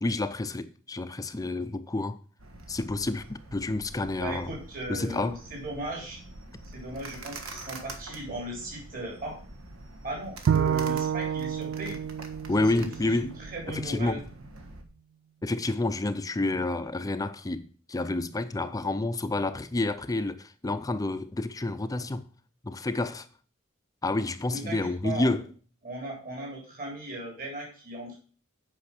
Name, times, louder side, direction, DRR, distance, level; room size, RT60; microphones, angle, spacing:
voice 1, 0.0-2.2 2.7-4.5 4.9-5.4 12.5-13.3 13.7-14.2 15.4-22.2 22.6-23.3 24.0-25.5, left 2 dB, 15° left, 0.5 m, -29 dB
sound 1, 2.4-14.8, right 2 dB, 85° right, 1.5 m, -45 dB
voice 2, 4.2-6.2 6.7-9.4 10.0-12.0 12.6-12.9 13.2-14.2 24.5-25.4 25.8-28.1, right 1 dB, 45° right, 3.9 m, -37 dB
Bowed string instrument, 10.5-13.7, right 8 dB, 60° right, 0.3 m, -29 dB
8.6 x 5.7 x 6.0 m
head